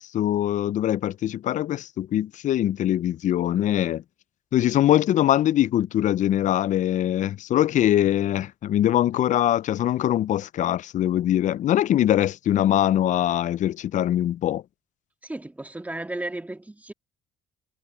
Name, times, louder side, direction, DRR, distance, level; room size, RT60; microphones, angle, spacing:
voice 1, 0.0-4.0 4.5-14.6, left 12 dB, 45° left, 0.4 m, -22 dB
voice 2, 15.2-16.9, right 2 dB, 10° right, 2.2 m, -34 dB
cardioid pair, 110°, 17 cm